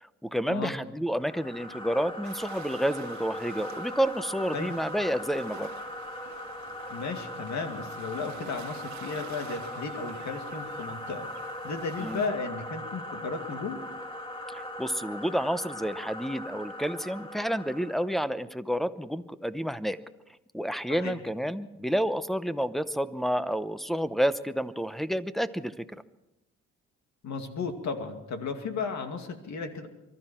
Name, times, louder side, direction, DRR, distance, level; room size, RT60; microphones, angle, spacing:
voice 1, 0.0-5.7 12.0-12.2 14.5-20.0 20.5-25.8, equal, ahead, 13 dB, 0.8 m, -30 dB
sound 1, 1.1-18.1, left 1 dB, 15° left, 2.1 m, -40 dB
sound 2, 2.2-12.3, right 9 dB, 70° right, 1.3 m, -50 dB
voice 2, 6.9-11.3 11.6-13.8 20.9-21.2 27.2-29.9, left 4 dB, 65° left, 6 dB, 2.4 m, -34 dB
24.0 x 13.5 x 4.5 m, 0.96 s
cardioid pair, 90°, 30 cm